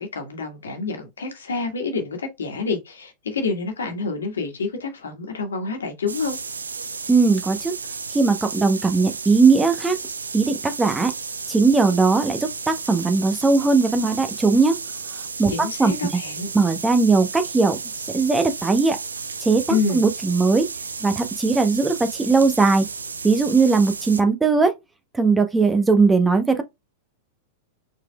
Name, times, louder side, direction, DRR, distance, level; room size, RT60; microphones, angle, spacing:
voice 1, 0.0-6.4 15.5-16.5 19.7-20.0, left 4 dB, 80° left, 1.6 m, -27 dB
sound 1, 6.1-24.2, right 5 dB, 85° right, 0.5 m, -33 dB
voice 2, 7.1-7.8 8.1-10.0 10.3-11.1 11.5-14.8 15.4-15.9 16.5-17.8 18.1-19.0 19.4-20.7 21.0-22.8 23.2-24.7 25.1-26.6, right 4 dB, 10° right, 0.8 m, -19 dB
4.7 x 3.8 x 2.3 m
hypercardioid pair, 100°, 0 cm